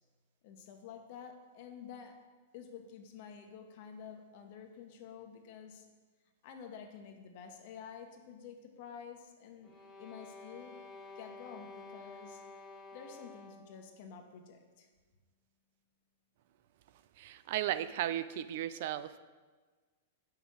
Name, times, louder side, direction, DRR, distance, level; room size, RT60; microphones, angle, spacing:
voice 1, 0.4-2.1 2.5-5.8 6.4-10.8 11.1-12.4 12.9-14.9, left 7 dB, 55° left, 4 dB, 1.2 m, -50 dB
sound 1, 9.6-13.8, left 3 dB, 15° left, 1.5 m, -51 dB
voice 2, 17.2-19.2, right 12 dB, 60° right, 13 dB, 0.4 m, -35 dB
5.8 x 5.4 x 6.4 m, 1.4 s
hypercardioid pair, 115°, 0 cm